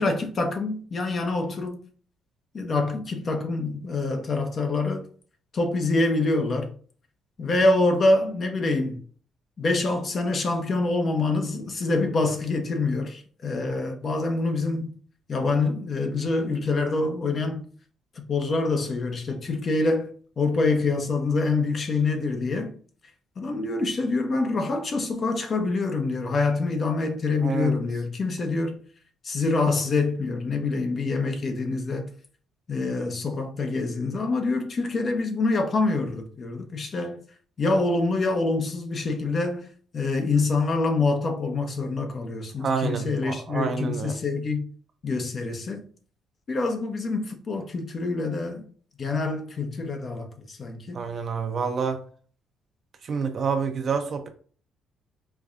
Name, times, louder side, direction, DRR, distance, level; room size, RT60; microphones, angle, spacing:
voice 1, 0.0-1.8 2.5-5.1 5.5-6.7 7.4-9.0 9.6-14.9 15.3-17.6 18.3-20.1 20.4-22.7 23.4-28.8 29.2-32.1 32.7-37.2 37.6-39.7 39.9-44.6 45.0-45.8 46.5-48.6 49.0-51.1, left 3 dB, 45° left, 0.8 m, -26 dB
voice 2, 27.4-27.7 42.6-44.2 50.9-52.0 53.0-54.3, right 5 dB, 50° right, 0.7 m, -28 dB
4.6 x 2.3 x 2.5 m
cardioid pair, 80°, 0 cm